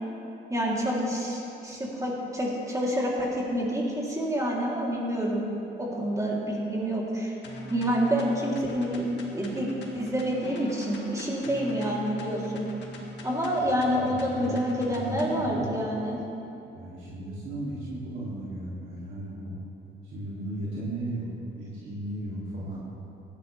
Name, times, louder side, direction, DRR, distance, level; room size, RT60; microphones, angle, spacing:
voice 1, 0.5-5.5 5.8-7.3 7.7-9.1 9.3-9.7 9.9-12.7 13.2-16.2, equal, 15° right, -5 dB, 3.6 m, -28 dB
sound 1, 7.4-15.4, left 1 dB, 65° left, 2.1 m, -43 dB
voice 2, 14.0-14.6 14.9-15.6 16.7-19.6 20.0-21.3 21.6-22.8, right 1 dB, 80° right, -8 dB, 3.1 m, -35 dB
17.0 x 12.0 x 3.5 m, 2.8 s
cardioid pair, 90°, 20 cm